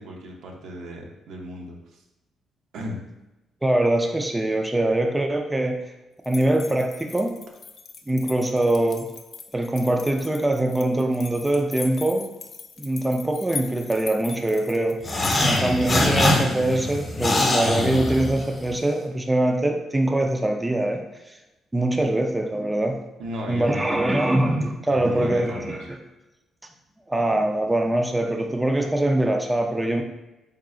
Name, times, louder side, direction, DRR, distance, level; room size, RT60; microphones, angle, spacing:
voice 1, 0.0-2.0 2.7-3.0 23.2-24.0 24.8-25.9, right 1 dB, 75° right, 0 dB, 0.8 m, -35 dB
voice 2, 3.6-5.8 6.3-7.4 8.1-9.1 9.5-12.3 12.8-15.0 15.4-21.4 21.7-23.0 23.5-25.8 27.1-30.0, right 1 dB, 15° right, 3 dB, 0.4 m, -23 dB
sound 1, 6.2-15.8, left 5 dB, 55° left, 0.4 m, -40 dB
sound 2, 15.0-18.7, left 2 dB, 30° left, 0.8 m, -23 dB
3.7 x 2.4 x 3.7 m, 1.0 s
cardioid pair, 90°, 0 cm